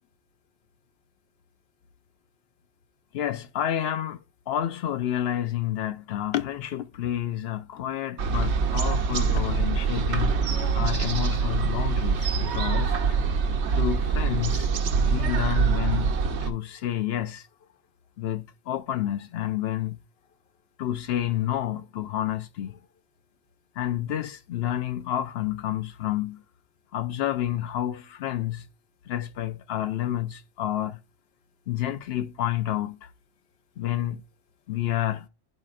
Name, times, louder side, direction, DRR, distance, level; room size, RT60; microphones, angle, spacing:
voice 1, 3.1-10.4 10.7-13.2 13.7-14.7 15.0-17.5 18.2-20.0 20.8-22.8 23.8-26.4 26.9-28.7 29.1-31.0 31.7-33.1 33.8-34.2 34.7-35.3, left 12 dB, 70° left, 0.8 m, -29 dB
sound 1, 8.2-16.5, right 5 dB, 85° right, 1.0 m, -24 dB
10.5 x 4.2 x 2.4 m
omnidirectional pair, 1.1 m